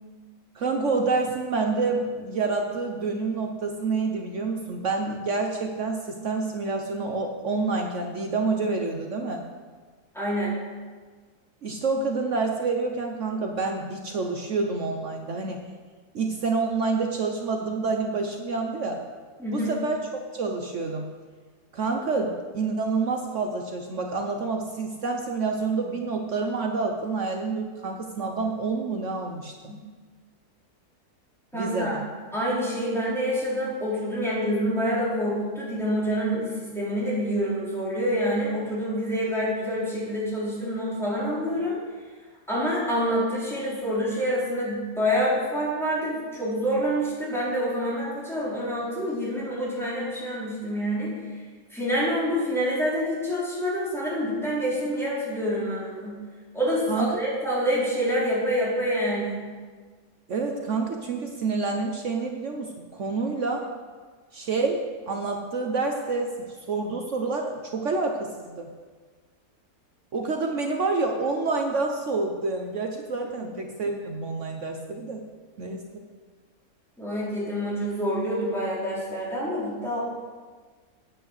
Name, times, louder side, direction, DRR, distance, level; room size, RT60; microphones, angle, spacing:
voice 1, 0.5-9.4 11.6-15.7 16.1-19.0 19.5-21.1 21.7-29.7 31.5-32.0 56.9-57.2 60.3-63.7 64.3-66.3 66.7-68.7 70.1-75.2 75.6-76.0, right 3 dB, 55° right, 3 dB, 1.1 m, -28 dB
voice 2, 10.1-10.5 19.4-19.7 29.7-29.8 31.5-32.0 32.3-41.8 42.5-51.1 51.7-56.2 56.5-59.4 77.0-80.0, equal, ahead, -8 dB, 4.0 m, -27 dB
9.0 x 8.9 x 6.5 m, 1.5 s
omnidirectional pair, 1.7 m